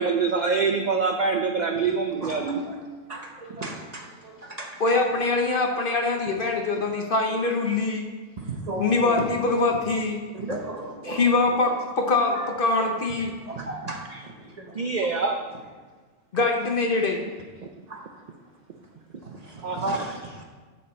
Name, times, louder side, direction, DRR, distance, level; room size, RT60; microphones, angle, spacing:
voice 1, 0.0-2.7 14.7-15.4 19.6-20.1, right 4 dB, 60° right, 4 dB, 0.4 m, -25 dB
voice 2, 2.2-2.8 3.1-4.9 8.4-9.3 10.3-11.3 11.6-11.7 12.3-12.5 12.8-12.9 13.4-15.3 17.9-18.2 19.2-20.4, right 2 dB, 35° right, 1 dB, 0.9 m, -36 dB
voice 3, 4.8-8.1 8.8-10.2 11.0-13.3 16.3-17.2, left 3 dB, 50° left, 2 dB, 0.8 m, -23 dB
12.0 x 4.3 x 4.3 m, 1.4 s
omnidirectional pair, 1.4 m